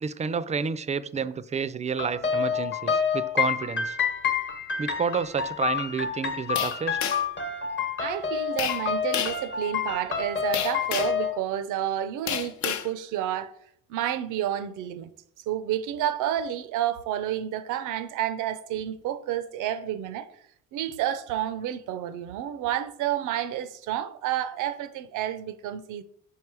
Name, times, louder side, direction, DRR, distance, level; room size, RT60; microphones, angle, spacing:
voice 1, 0.0-4.0 4.8-7.0, right 6 dB, 25° right, 0.3 m, -30 dB
sound 1, 2.0-11.3, left 6 dB, 40° left, 1.0 m, -28 dB
sound 2, 6.6-7.4 8.6-8.8 9.1-9.4 10.5-11.2 12.3-12.9, left 9 dB, 70° left, 0.7 m, -30 dB
voice 2, 8.0-13.5 13.9-15.1 15.5-20.3 20.7-26.0, right 11 dB, 90° right, 0.5 m, -30 dB
5.2 x 4.7 x 4.7 m
cardioid pair, 90°, 30 cm